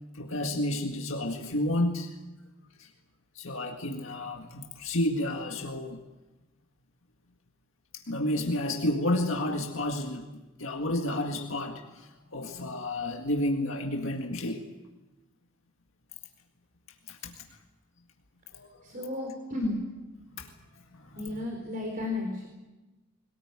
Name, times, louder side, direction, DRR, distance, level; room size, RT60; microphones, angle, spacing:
voice 1, 0.1-2.2 2.8-2.9 3.4-6.0 8.1-10.3 10.6-14.7 17.1-17.3 18.5-18.8 20.4-20.5 20.9-21.4, left 1 dB, 70° left, 2 dB, 1.9 m, -31 dB
voice 2, 18.8-19.8 21.2-22.5, left 2 dB, 40° right, 1 dB, 4.2 m, -33 dB
22.0 x 19.0 x 8.9 m, 1.1 s
head